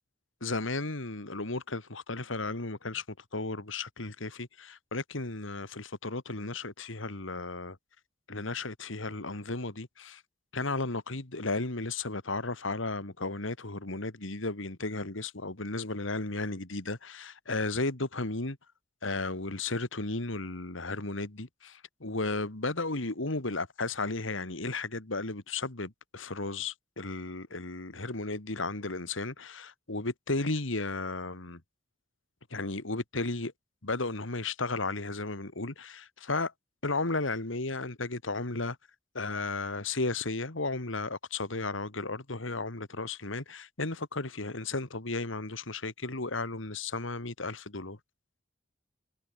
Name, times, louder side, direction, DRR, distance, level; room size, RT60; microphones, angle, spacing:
voice 1, 0.4-3.0 3.3-7.8 8.3-10.2 10.5-18.6 19.0-31.6 32.5-33.5 33.8-36.5 36.8-38.8 39.1-48.0, left 3 dB, 85° left, 2.4 m, -34 dB
head